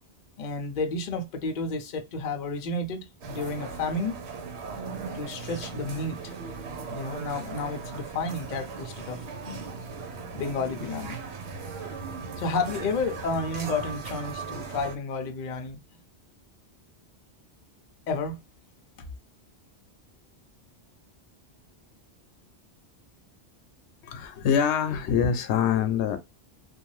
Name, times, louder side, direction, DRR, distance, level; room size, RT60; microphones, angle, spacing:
voice 1, 0.4-4.1 5.1-6.3 6.9-9.6 10.3-11.2 12.4-15.8 18.1-18.4, left 3 dB, 55° left, 0.6 m, -31 dB
sound 1, 3.2-15.0, right 4 dB, 80° right, 0.9 m, -38 dB
voice 2, 24.0-26.2, left 7 dB, 90° left, 0.9 m, -24 dB
2.7 x 2.2 x 3.0 m
omnidirectional pair, 1.1 m